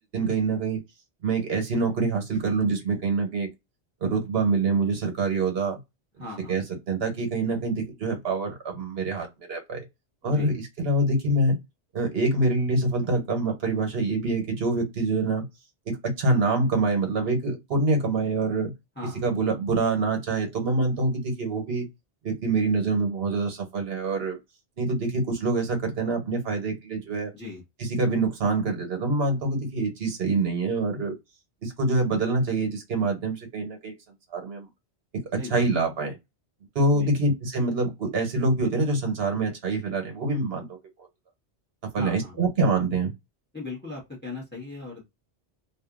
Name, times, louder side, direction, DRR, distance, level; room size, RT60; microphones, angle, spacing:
voice 1, 0.1-0.8 1.2-3.5 4.0-5.8 6.5-9.8 10.2-11.6 11.9-15.4 15.9-18.7 19.2-21.9 22.2-24.4 24.8-27.3 27.8-31.1 31.6-33.9 34.3-34.7 35.3-36.2 36.7-40.7 41.9-43.1, right 3 dB, 60° right, 1.2 m, -25 dB
voice 2, 6.2-6.6 10.2-10.6 19.0-19.4 27.3-27.6 35.4-35.6 36.9-37.1 41.9-42.4 43.5-45.0, left 3 dB, 10° left, 1.1 m, -38 dB
2.7 x 2.5 x 2.4 m
omnidirectional pair, 1.1 m